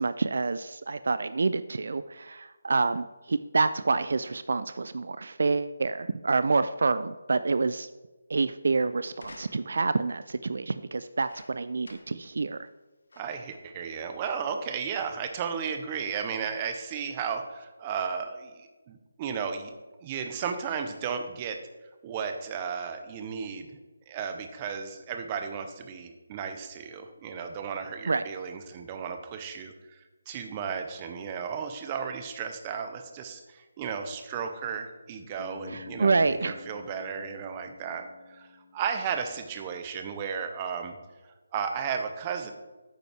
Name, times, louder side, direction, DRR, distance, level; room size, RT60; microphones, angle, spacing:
voice 1, 0.0-7.9 8.3-12.6 28.1-28.2 35.7-36.6, right 3 dB, 60° right, 13 dB, 0.3 m, -27 dB
sound 1, 9.1-9.9 11.0-12.3 12.6-12.7 13.1-13.5 14.3-14.4, left 2 dB, 75° left, 1.2 m, -51 dB
voice 2, 13.2-19.7 20.0-21.6 22.0-23.8 24.1-41.0 41.5-42.5, right 6 dB, 20° right, 6 dB, 0.6 m, -34 dB
Bass guitar, 35.4-39.5, left 4 dB, 45° left, 2.0 m, -48 dB
9.0 x 5.3 x 4.8 m, 1.2 s
hypercardioid pair, 170°, 0 cm